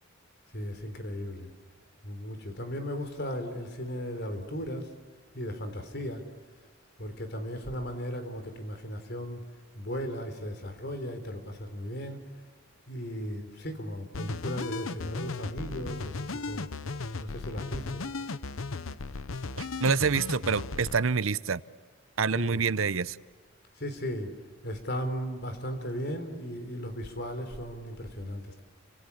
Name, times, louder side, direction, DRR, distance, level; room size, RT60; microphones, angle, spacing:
voice 1, 0.5-1.5 2.0-4.9 5.3-6.2 7.0-9.4 9.7-12.2 12.9-16.7 17.2-18.0 22.3-22.6 23.8-24.3 24.6-28.6, equal, 55° left, 8 dB, 3.8 m, -36 dB
sound 1, 14.1-21.0, left 3 dB, 85° left, 0.9 m, -36 dB
voice 2, 19.6-21.6 22.2-23.2, right 5 dB, 85° right, 17 dB, 0.8 m, -27 dB
30.0 x 26.0 x 7.1 m, 1.6 s
head